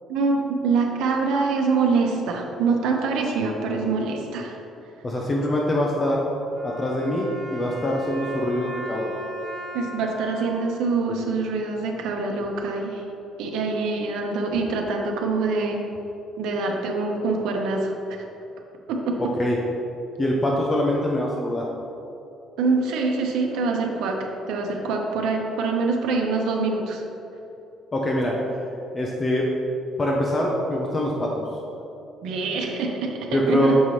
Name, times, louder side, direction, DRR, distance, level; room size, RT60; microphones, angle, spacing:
voice 1, 0.1-4.6 9.7-13.0 13.4-15.8 16.4-18.2 18.9-19.3 22.6-24.2 24.5-27.0 32.2-33.8, right 4 dB, 80° right, 2 dB, 0.8 m, -25 dB
voice 2, 5.0-6.2 6.6-9.1 19.2-19.6 20.2-21.7 27.9-28.4 28.9-29.5 30.0-31.4 33.3-33.8, left 1 dB, 20° left, -2 dB, 0.5 m, -24 dB
Wind instrument woodwind instrument, 6.5-11.7, equal, 15° right, 1.5 m, -38 dB
7.2 x 5.4 x 3.2 m, 3.0 s
cardioid pair, 180°, 0 cm